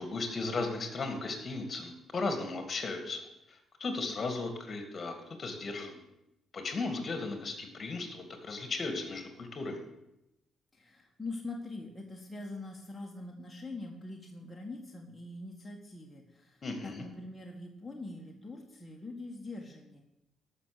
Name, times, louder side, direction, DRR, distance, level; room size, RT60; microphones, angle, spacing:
voice 1, 0.0-3.2 3.5-6.0 6.5-9.8 16.6-17.0, left 3 dB, 40° left, 6 dB, 2.2 m, -36 dB
voice 2, 10.7-20.0, left 2 dB, 15° left, -1 dB, 1.7 m, -43 dB
13.5 x 6.1 x 6.8 m, 0.88 s
cardioid pair, 90°, 0 cm